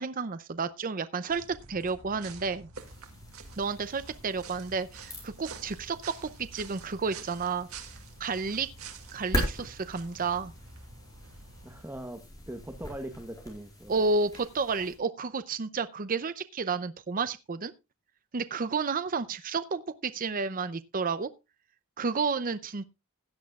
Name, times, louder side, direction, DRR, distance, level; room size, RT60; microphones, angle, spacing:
voice 1, 0.0-2.7 3.6-7.7 8.2-8.7 9.1-10.5 13.9-17.7 18.3-21.3 22.0-22.9, right 4 dB, 40° right, 0.6 m, -31 dB
sound 1, 1.3-11.8, right 4 dB, 75° right, 2.2 m, -48 dB
sound 2, 2.8-15.0, equal, 15° left, 4.5 m, -41 dB
voice 2, 11.6-14.0, right 1 dB, 10° right, 1.0 m, -41 dB
16.5 x 10.5 x 2.3 m
head